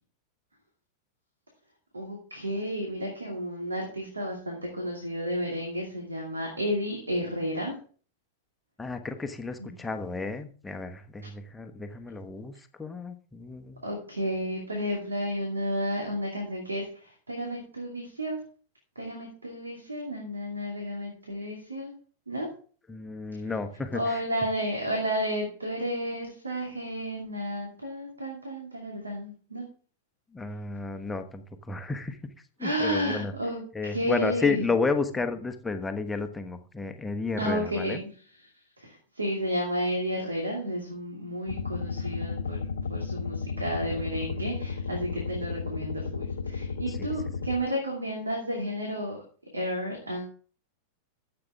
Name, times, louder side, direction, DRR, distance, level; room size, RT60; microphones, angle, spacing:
voice 1, 1.9-7.7 9.6-9.7 13.8-18.4 19.0-21.9 22.3-22.5 23.9-29.6 32.6-33.6 33.9-34.7 37.4-38.1 38.8-49.2 49.5-50.3, equal, 80° right, 0 dB, 2.5 m, -32 dB
voice 2, 8.8-13.8 22.9-24.2 30.3-32.3 32.6-33.3 33.7-38.0 46.9-47.1, left 4 dB, 10° left, 7 dB, 1.1 m, -32 dB
sound 1, 41.5-47.6, left 5 dB, 70° left, 0.8 m, -33 dB
13.5 x 7.9 x 3.6 m, 0.43 s
figure-of-eight pair, 90°, 0 cm